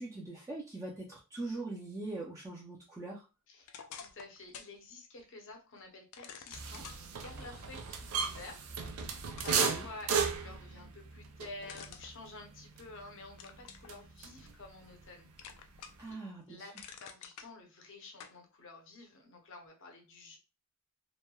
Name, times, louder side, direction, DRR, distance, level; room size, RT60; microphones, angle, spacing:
voice 1, 0.0-3.3 9.6-9.9 16.0-16.6, right 2 dB, 15° right, -4 dB, 0.4 m, -42 dB
voice 2, 3.5-15.3 16.1-16.2 16.5-20.4, left 2 dB, 60° left, 3 dB, 0.7 m, -51 dB
sound 1, 3.6-4.8 5.2-5.3 6.1-7.0 8.8-8.9 9.3-10.4 11.7-12.9 13.4-13.9 14.4-15.1 15.4-16.1 16.5-17.5 18.2-18.4, left 7 dB, 90° left, 0.4 m, -49 dB
sound 2, 6.5-14.6 14.9-16.1, right 6 dB, 75° right, 0.4 m, -36 dB
3.0 x 2.1 x 2.2 m, 0.30 s
head